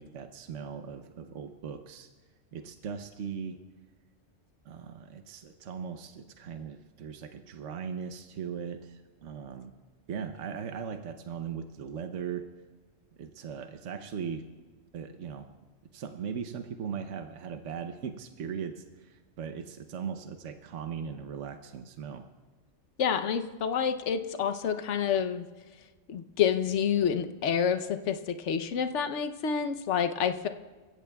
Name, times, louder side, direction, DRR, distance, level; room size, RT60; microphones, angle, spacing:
voice 1, 0.0-2.1 2.5-3.6 4.6-9.7 10.1-12.4 13.2-14.5 14.9-15.5 15.9-22.2, right 7 dB, 70° right, 6 dB, 1.1 m, -39 dB
voice 2, 23.0-25.4 26.1-30.5, left 7 dB, 70° left, 9 dB, 1.1 m, -28 dB
27.5 x 15.5 x 2.3 m, 1.4 s
omnidirectional pair, 1.3 m